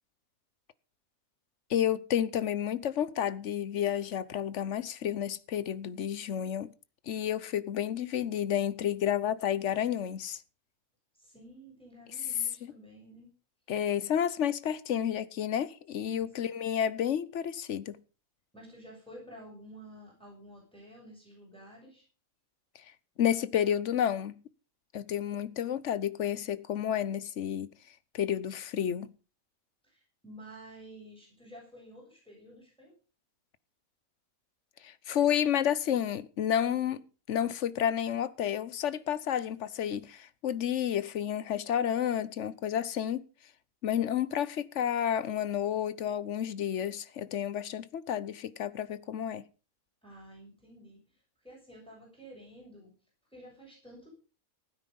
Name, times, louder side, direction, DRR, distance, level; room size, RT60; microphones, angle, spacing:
voice 1, 1.7-6.7 7.1-10.4 13.7-18.0 23.2-24.4 24.9-27.7 28.1-29.1 34.8-43.2 43.8-49.4, left 9 dB, 60° left, 1.1 m, -30 dB
voice 2, 11.2-13.3 16.0-16.2 18.5-22.0 29.8-32.9 50.0-52.9 53.3-54.1, right 1 dB, 5° left, 7.5 m, -51 dB
16.0 x 9.5 x 5.4 m
omnidirectional pair, 1.5 m